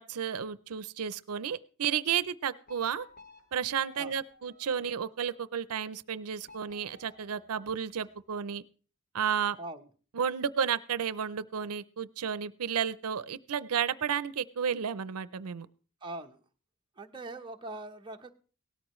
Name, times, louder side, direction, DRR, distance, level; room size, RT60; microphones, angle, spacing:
voice 1, 0.0-3.1 3.5-8.6 9.1-9.6 10.1-15.7, right 8 dB, 85° right, 16 dB, 0.5 m, -32 dB
sound 1, 2.7-5.3 6.4-8.2, left 2 dB, 40° left, 2.4 m, -56 dB
voice 2, 16.0-16.4 17.0-18.3, right 2 dB, 20° right, 3 dB, 0.8 m, -41 dB
18.0 x 13.5 x 3.1 m, 0.39 s
head